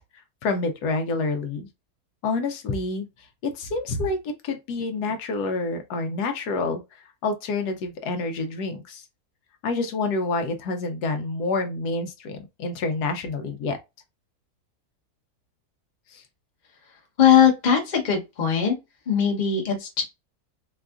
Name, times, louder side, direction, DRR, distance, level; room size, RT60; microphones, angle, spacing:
voice 1, 0.4-1.7 2.2-3.1 3.4-9.1 9.6-13.8 16.1-16.2, left 3 dB, 75° left, 1.1 m, -28 dB
voice 2, 17.2-18.7 19.1-20.0, left 8 dB, 35° left, 0.9 m, -20 dB
4.4 x 2.3 x 2.3 m
omnidirectional pair, 1.8 m